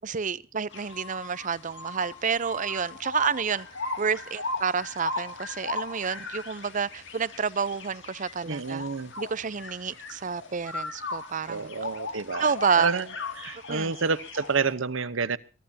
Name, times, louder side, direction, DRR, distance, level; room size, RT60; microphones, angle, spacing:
voice 1, 0.0-3.7 4.0-8.9 9.2-11.7 12.4-12.9 13.7-14.0, right 6 dB, 40° right, 0.6 m, -29 dB
sound 1, 0.7-14.7, left 3 dB, 60° left, 2.4 m, -38 dB
voice 2, 8.5-9.1 11.5-13.1 13.4-15.4, right 5 dB, 75° right, 0.9 m, -29 dB
23.0 x 14.5 x 2.8 m
head